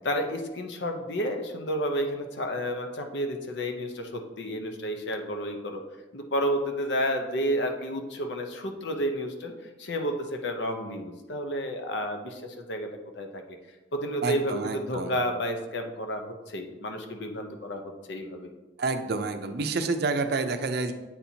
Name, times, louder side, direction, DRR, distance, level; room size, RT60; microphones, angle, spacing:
voice 1, 0.0-5.8 6.1-9.5 9.8-12.9 13.2-13.4 13.9-17.8 18.1-18.5, equal, 70° left, 5 dB, 0.7 m, -31 dB
voice 2, 14.2-15.1 18.8-20.9, right 3 dB, 60° right, 8 dB, 0.5 m, -28 dB
8.5 x 4.3 x 2.8 m, 1.1 s
head